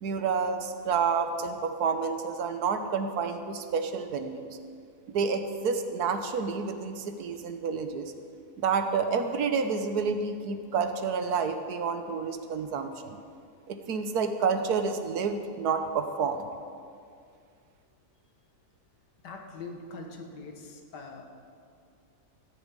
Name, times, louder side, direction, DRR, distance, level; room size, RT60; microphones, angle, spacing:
voice 1, 0.0-4.5 5.1-8.1 8.6-13.2 13.7-16.5, right 5 dB, 70° right, 8 dB, 1.4 m, -29 dB
voice 2, 19.2-21.2, left 3 dB, 85° left, 3 dB, 2.0 m, -42 dB
14.0 x 7.1 x 9.0 m, 2.3 s
omnidirectional pair, 1.8 m